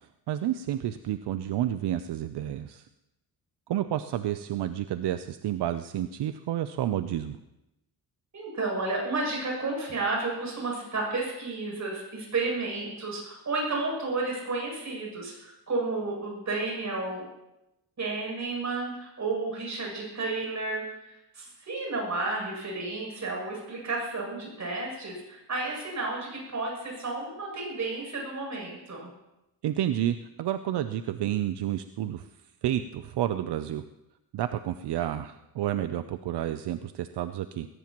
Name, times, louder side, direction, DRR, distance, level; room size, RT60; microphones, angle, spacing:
voice 1, 0.3-2.8 3.7-7.4 29.6-32.3 32.6-33.8 34.3-37.7, right 11 dB, 80° right, 10 dB, 0.6 m, -30 dB
voice 2, 8.3-17.3 18.0-29.1, right 3 dB, 45° right, -2 dB, 7.6 m, -32 dB
20.0 x 18.0 x 3.0 m, 0.94 s
wide cardioid pair, 130°, 40 cm